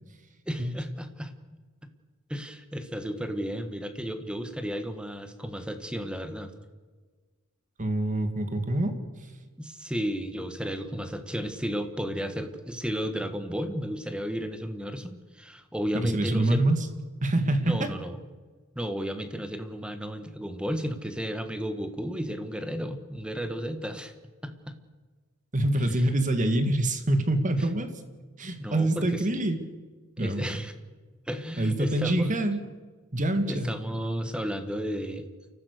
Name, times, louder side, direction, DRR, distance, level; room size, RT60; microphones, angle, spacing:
voice 1, 0.5-1.3 2.3-6.5 9.6-16.7 17.6-18.2 18.7-24.1 24.4-24.7 25.9-26.0 28.6-29.2 30.2-30.7 31.3-32.3 33.5-35.3, equal, 5° right, 9 dB, 1.5 m, -33 dB
voice 2, 7.8-8.9 15.9-16.9 17.2-17.9 25.5-27.9 28.4-29.6 30.2-30.6 31.6-32.6 33.1-34.1, right 1 dB, 40° right, 8 dB, 2.1 m, -26 dB
29.5 x 14.5 x 6.7 m, 1.4 s
head